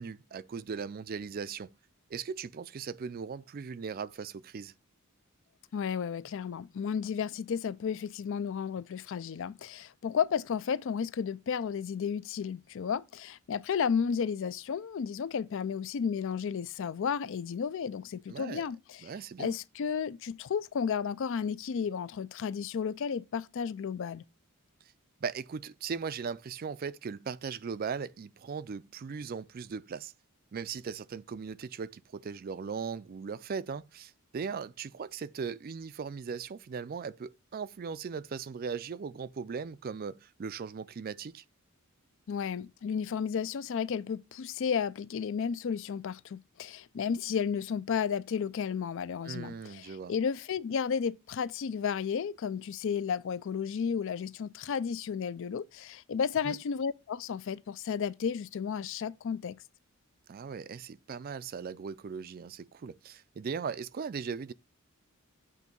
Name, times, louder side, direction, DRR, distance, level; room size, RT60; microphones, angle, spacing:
voice 1, 0.0-1.7 2.1-4.7 18.3-18.6 19.0-19.6 25.2-30.1 30.5-41.4 49.2-50.1 56.4-56.6 60.3-64.5, right 6 dB, 40° right, 0.3 m, -38 dB
voice 2, 5.7-19.1 19.4-24.2 42.3-59.6, left 7 dB, 55° left, 0.4 m, -33 dB
8.3 x 2.8 x 5.2 m
head